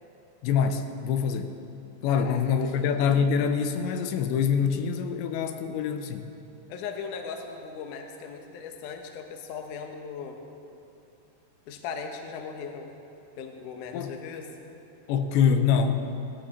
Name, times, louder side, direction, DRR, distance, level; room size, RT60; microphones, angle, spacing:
voice 1, 0.4-1.5 2.0-6.3 13.9-14.1 15.1-16.0, left 7 dB, 85° left, 7 dB, 3.1 m, -25 dB
voice 2, 2.1-3.1 6.7-10.4 11.7-13.0 13.4-14.5, left 6 dB, 70° left, 4 dB, 2.0 m, -38 dB
17.0 x 13.5 x 4.3 m, 2.7 s
omnidirectional pair, 5.0 m